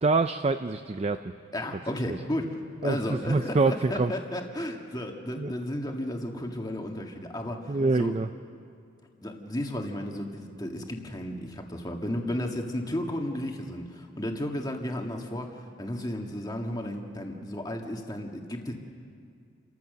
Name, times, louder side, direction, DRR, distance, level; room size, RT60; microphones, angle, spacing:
voice 1, 0.0-1.3 2.8-4.1 5.4-5.5 7.7-8.3, right 3 dB, 30° right, 9 dB, 0.4 m, -25 dB
voice 2, 1.5-2.6 2.8-8.2 9.2-18.7, left 1 dB, 20° left, 2 dB, 1.7 m, -33 dB
30.0 x 14.0 x 6.7 m, 2.3 s
head